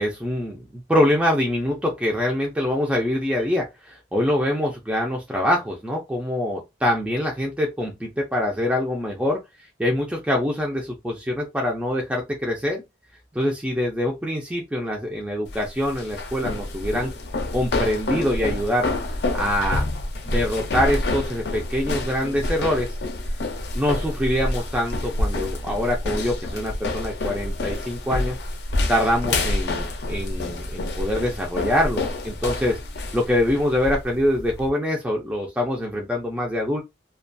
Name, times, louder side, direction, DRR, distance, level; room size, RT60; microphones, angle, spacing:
voice 1, 0.0-9.4 9.8-12.8 13.3-17.1 17.5-18.9 19.3-19.8 20.3-22.9 23.8-28.4 28.9-32.8 33.1-36.8, left 1 dB, 5° right, 0.4 m, -24 dB
sound 1, 15.5-34.7, left 2 dB, 65° left, 0.5 m, -28 dB
2.3 x 2.2 x 2.5 m
head